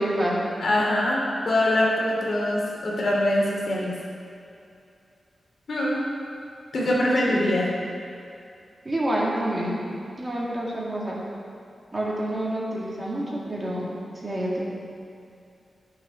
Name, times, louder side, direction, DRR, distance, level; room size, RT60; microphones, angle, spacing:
voice 1, 0.0-0.5 7.3-7.5 8.8-9.8 10.2-11.2 11.9-13.9 14.2-14.6, right 1 dB, 20° right, -5 dB, 2.1 m, -27 dB
voice 2, 0.6-4.0 5.7-6.0 6.7-7.7, left 1 dB, 60° left, -4 dB, 2.6 m, -23 dB
12.0 x 6.7 x 6.3 m, 2.5 s
wide cardioid pair, 170°, 0 cm